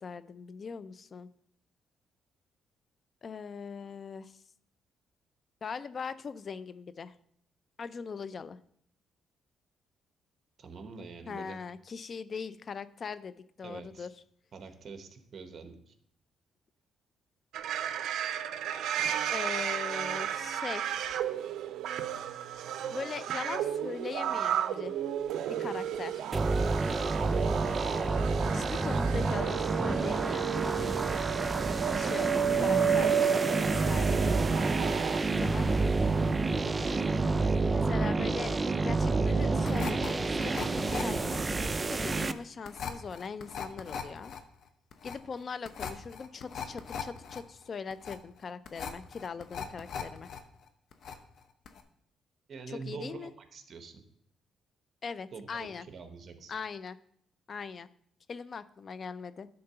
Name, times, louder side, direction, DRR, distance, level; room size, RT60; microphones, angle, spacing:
voice 1, 0.0-1.3 3.2-4.3 5.6-7.1 7.8-8.6 11.3-14.1 19.3-21.1 22.9-24.9 25.5-26.2 28.5-30.9 31.9-34.3 35.4-35.9 37.7-38.6 38.8-44.3 45.0-50.3 52.7-53.3 55.0-55.9 56.5-57.0 57.5-57.9 58.3-59.5, left 5 dB, 45° left, 15 dB, 0.4 m, -40 dB
voice 2, 10.6-11.6 13.6-14.1 14.5-15.9 28.4-29.0 36.6-37.0 52.5-54.0 55.3-56.5, right 4 dB, 50° right, 7 dB, 1.2 m, -45 dB
sound 1, 17.5-35.2, right 9 dB, 80° right, 0.5 m, -32 dB
sound 2, 26.3-42.3, right 3 dB, 25° right, 0.4 m, -29 dB
sound 3, 39.6-50.4 50.7-51.4 51.7-51.8, left 6 dB, 65° left, 0.8 m, -40 dB
10.5 x 3.8 x 5.7 m, 0.69 s
cardioid pair, 90°, 0 cm